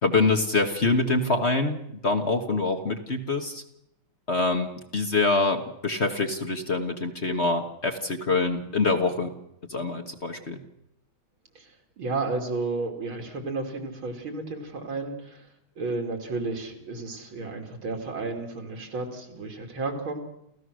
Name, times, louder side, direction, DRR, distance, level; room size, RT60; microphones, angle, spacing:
voice 1, 0.0-3.6 4.3-9.3 9.7-10.6, left 3 dB, 35° left, 5 dB, 1.5 m, -25 dB
voice 2, 12.0-15.5 15.8-20.2, right 3 dB, 80° right, 3 dB, 3.6 m, -32 dB
29.0 x 15.5 x 6.4 m, 0.79 s
omnidirectional pair, 2.2 m